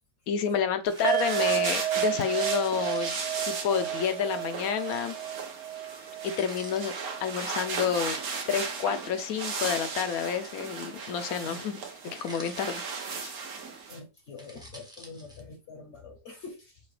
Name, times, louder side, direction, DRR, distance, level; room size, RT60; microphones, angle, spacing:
voice 1, 0.3-3.2 3.4-5.2 6.2-6.9 7.2-8.2 8.5-12.9 13.2-13.3, left 7 dB, 80° left, 1.1 m, -29 dB
sound 1, 0.9-1.8 2.8-3.7 4.8-5.1 6.2-6.8 7.9-8.7 10.1-10.9 12.0-13.2 14.2-15.4, equal, 5° right, 0.6 m, -48 dB
Douche-Sechage, 0.9-14.0, right 5 dB, 80° right, 1.4 m, -36 dB
sound 2, 1.0-8.2 8.5-8.7 9.1-9.2, right 13 dB, 60° right, 0.6 m, -32 dB
voice 2, 13.9-16.8, left 4 dB, 55° left, 1.0 m, -45 dB
5.8 x 2.3 x 3.2 m
omnidirectional pair, 1.5 m